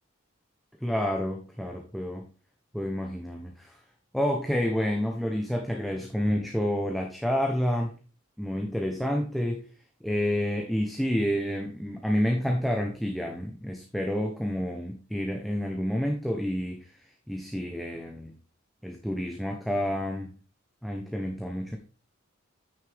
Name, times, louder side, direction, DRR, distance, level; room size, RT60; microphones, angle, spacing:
voice 1, 0.8-2.3 2.7-3.8 4.1-7.9 8.4-9.6 10.0-16.9 17.3-18.3 18.8-20.3 20.8-21.8, equal, ahead, 2 dB, 0.9 m, -29 dB
9.4 x 6.6 x 3.5 m, 0.37 s
head